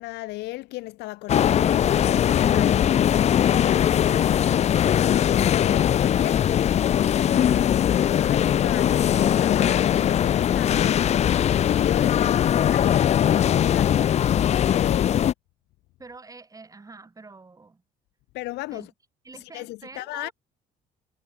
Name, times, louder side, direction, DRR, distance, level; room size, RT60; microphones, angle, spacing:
voice 1, 0.0-2.9 3.6-4.1 5.1-6.5 7.3-11.2 11.5-14.0 14.7-15.2 18.3-18.9 19.3-20.3, left 20 dB, 85° left, 1.0 m, -35 dB
sound 1, 1.3-15.3, left 10 dB, 40° left, 0.5 m, -20 dB
voice 2, 16.0-17.8 18.7-18.9 19.2-20.3, right 3 dB, 20° right, 5.1 m, -45 dB
cardioid pair, 110°, 17 cm